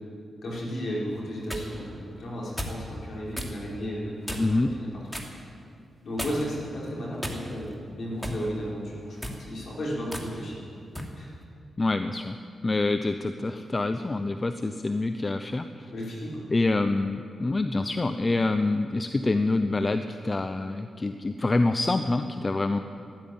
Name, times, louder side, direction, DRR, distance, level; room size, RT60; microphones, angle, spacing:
voice 1, 0.4-4.9 5.3-5.4 6.0-10.7 11.2-11.3 15.9-16.4, equal, 65° left, -5 dB, 5.3 m, -34 dB
sound 1, 1.1-1.7 2.6-2.8 3.3-3.6 4.2-4.6 5.1-5.3 6.2-6.6 7.2-7.7 8.2-8.4 9.1-9.4 10.1-10.3 10.9-11.1, equal, 5° left, 2.8 m, -35 dB
voice 2, 4.4-4.7 11.8-12.4 12.6-15.9 16.5-22.8, left 2 dB, 35° left, 9 dB, 0.7 m, -26 dB
13.5 x 11.5 x 8.8 m, 2.4 s
supercardioid pair, 40°, 0 cm